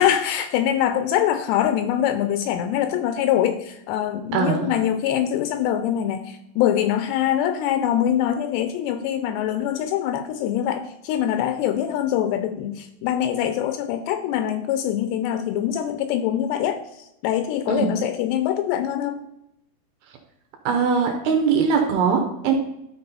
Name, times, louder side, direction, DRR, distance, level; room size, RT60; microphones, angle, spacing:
voice 1, 0.0-19.2, left 10 dB, 80° left, 9 dB, 2.5 m, -23 dB
voice 2, 4.3-4.7 17.7-17.9 20.7-22.5, right 6 dB, 75° right, 3 dB, 2.4 m, -21 dB
12.0 x 4.2 x 4.0 m, 0.83 s
omnidirectional pair, 5.1 m